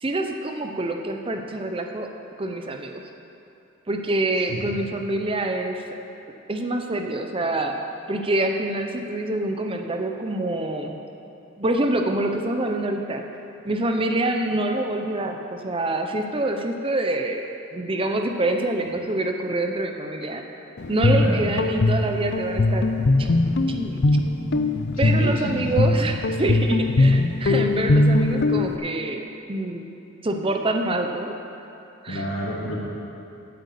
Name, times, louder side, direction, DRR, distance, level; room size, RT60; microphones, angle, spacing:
voice 1, 0.0-2.1 2.4-3.0 3.9-5.8 6.5-7.7 8.1-10.9 11.6-13.2 13.6-20.4 20.9-22.9 23.2-23.3 23.7-24.0 25.0-29.2 29.5-29.9 30.2-31.3 32.0-32.2, right 2 dB, 25° right, 4 dB, 0.7 m, -26 dB
Guitar, 20.8-28.8, left 2 dB, 55° left, 0.5 m, -21 dB
voice 2, 25.0-25.7 32.1-32.8, equal, 80° left, -5 dB, 2.9 m, -28 dB
8.7 x 8.0 x 8.4 m, 2.7 s
head